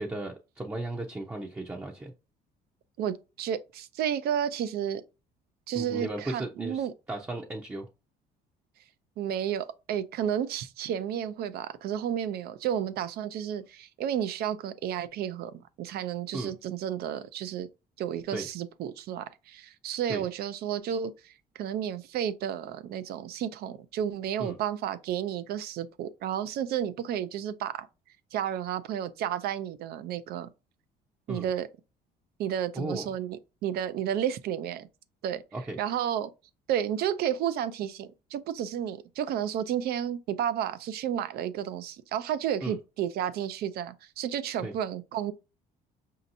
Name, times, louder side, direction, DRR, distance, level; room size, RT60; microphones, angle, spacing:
voice 1, 0.0-2.1 5.7-6.8 7.1-7.9 16.3-16.5 18.3-18.5 20.1-20.3 24.4-24.6 31.3-31.5 32.7-33.1 35.5-35.8 42.6-42.8 44.6-44.7, right 2 dB, 15° right, 0.6 m, -35 dB
voice 2, 3.0-5.0 5.7-6.9 9.2-17.7 18.0-27.9 28.3-30.5 31.3-31.7 32.4-34.9 35.2-35.4 35.8-36.3 36.7-45.3, right 9 dB, 70° right, 0.5 m, -32 dB
5.1 x 2.8 x 2.6 m
cardioid pair, 110°, 17 cm